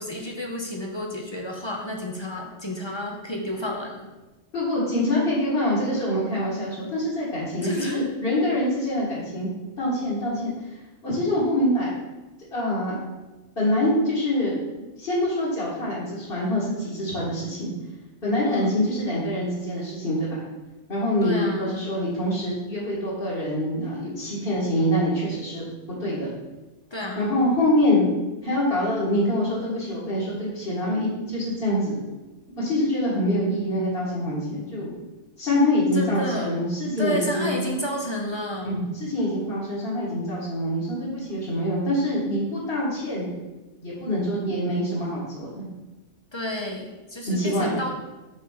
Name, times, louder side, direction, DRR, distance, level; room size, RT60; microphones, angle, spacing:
voice 1, 0.0-4.1 7.5-8.0 18.4-18.8 21.2-22.0 26.9-27.3 35.9-36.6 37.0-38.8 46.3-47.9, left 1 dB, 25° left, 0 dB, 0.7 m, -31 dB
voice 2, 4.5-9.5 9.8-10.5 11.0-11.9 12.5-13.0 13.6-14.6 15.0-17.7 18.2-20.4 20.9-25.6 26.0-26.3 27.2-28.0 28.4-32.0 32.6-34.9 35.4-37.6 38.6-43.3 43.8-45.7 47.3-47.7, left 1 dB, 45° left, -10 dB, 2.1 m, -25 dB
5.3 x 4.2 x 5.7 m, 1.1 s
omnidirectional pair, 1.3 m